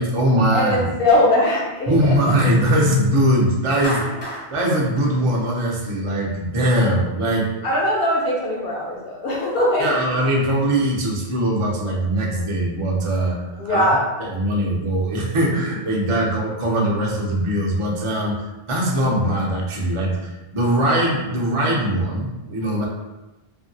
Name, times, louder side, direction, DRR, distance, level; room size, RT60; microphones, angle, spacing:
voice 1, 0.0-1.0 1.9-4.1 4.5-7.5 9.8-13.9 14.2-22.9, right 1 dB, 40° right, -2 dB, 0.5 m, -21 dB
voice 2, 0.5-2.2 4.0-4.1 7.6-10.3 13.5-14.0, left 1 dB, 60° left, -4 dB, 0.9 m, -21 dB
Clapping, 3.8-6.1, equal, 25° left, 0.7 m, -32 dB
2.7 x 2.5 x 2.6 m, 1.1 s
omnidirectional pair, 1.2 m